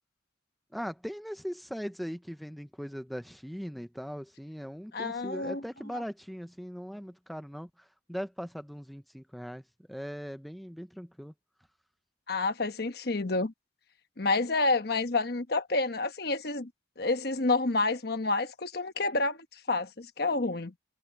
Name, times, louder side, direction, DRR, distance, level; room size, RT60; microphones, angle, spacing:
voice 1, 0.7-9.6 9.9-11.3, equal, ahead, 0.5 m, -40 dB
voice 2, 4.9-5.6 12.3-13.5 14.2-16.7 17.0-20.7, left 3 dB, 55° left, 1.1 m, -29 dB
head